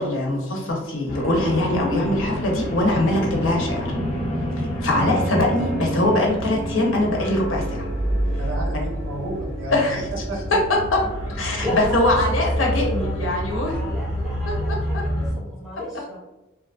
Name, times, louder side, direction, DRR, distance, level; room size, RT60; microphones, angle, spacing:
voice 1, 0.0-3.9 4.8-7.9 9.7-10.0 11.4-13.7 14.5-14.6 14.9-15.0, left 1 dB, 80° left, 0 dB, 0.7 m, -22 dB
sound 1, 1.1-15.3, equal, 35° left, 1.1 m, -28 dB
Piano, 4.9-14.5, right 1 dB, 50° right, 0.6 m, -35 dB
voice 2, 8.4-10.8 11.5-11.6, right 1 dB, 85° right, -3 dB, 1.0 m, -32 dB
voice 3, 11.6-16.2, left 1 dB, ahead, -9 dB, 0.7 m, -33 dB
2.9 x 2.3 x 2.4 m, 1.0 s
head